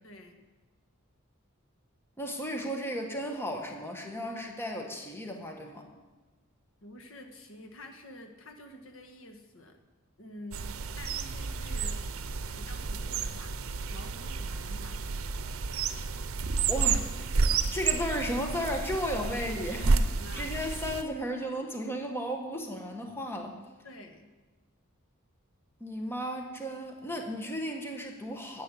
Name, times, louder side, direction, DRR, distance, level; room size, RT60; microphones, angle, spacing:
voice 1, 0.0-0.4 6.8-9.8 10.2-10.7 10.9-12.0 12.6-13.6 13.9-15.0 19.9-20.5 23.8-24.3, left 1 dB, 65° left, 5 dB, 1.4 m, -48 dB
voice 2, 2.2-5.9 16.7-17.4 17.7-20.0 20.3-23.6 25.8-28.6, equal, 10° left, 2 dB, 1.2 m, -34 dB
sound 1, 10.5-21.0, right 4 dB, 75° right, 0.7 m, -31 dB
10.5 x 8.2 x 7.4 m, 1.3 s
head